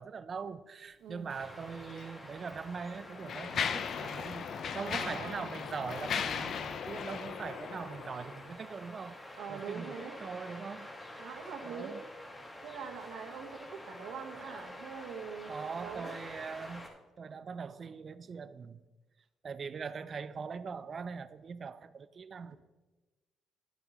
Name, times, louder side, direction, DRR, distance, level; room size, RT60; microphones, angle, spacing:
voice 1, 0.0-4.5 4.7-9.2 9.5-10.9 11.7-12.0 15.5-16.9 17.2-18.8 19.4-22.6, right 5 dB, 45° right, 0.4 m, -42 dB
voice 2, 1.0-1.3 4.8-5.4 9.4-10.2 11.2-12.0 12.6-16.1, right 6 dB, 85° right, 1.2 m, -43 dB
sound 1, 1.3-16.9, left 1 dB, 25° left, 1.5 m, -48 dB
Mechanisms, 1.9-2.1 2.8-8.5, left 7 dB, 60° left, 0.5 m, -37 dB
11.5 x 8.7 x 3.0 m
cardioid pair, 90°, 0 cm